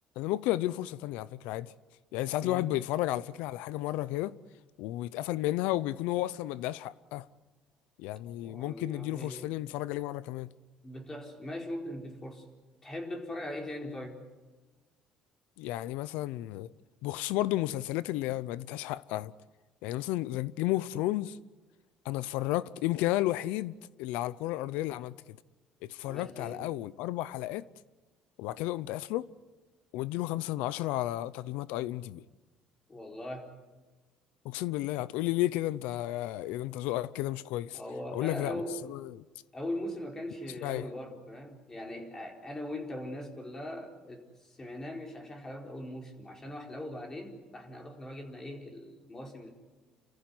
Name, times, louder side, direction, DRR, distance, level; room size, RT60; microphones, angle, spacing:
voice 1, 0.2-1.7 2.1-4.4 4.8-7.3 8.0-10.5 15.6-16.7 17.0-19.3 19.8-21.4 22.0-25.4 25.8-27.6 28.4-29.3 29.9-32.2 34.4-37.8 38.1-38.6 38.9-39.2 40.6-40.9, left 15 dB, 90° left, 0.7 m, -32 dB
voice 2, 2.4-2.8 8.4-9.6 10.8-12.4 12.8-14.2 26.0-26.7 32.9-33.5 37.7-38.8 39.5-49.5, left 1 dB, 25° left, 4.4 m, -40 dB
28.5 x 15.0 x 9.5 m
cardioid pair, 100°, 2 cm